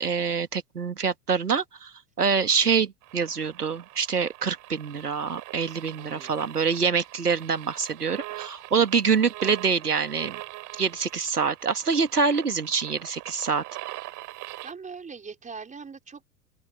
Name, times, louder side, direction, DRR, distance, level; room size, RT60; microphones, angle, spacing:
voice 1, 0.0-1.9 2.2-10.4 10.8-13.6, right 5 dB, 85° right, 2.0 m, -25 dB
sound 1, 3.0-14.7, right 18 dB, 40° right, 3.7 m, -43 dB
voice 2, 6.0-6.5 14.6-16.3, right 5 dB, 15° right, 4.6 m, -41 dB
open air
figure-of-eight pair, 85°, 45 cm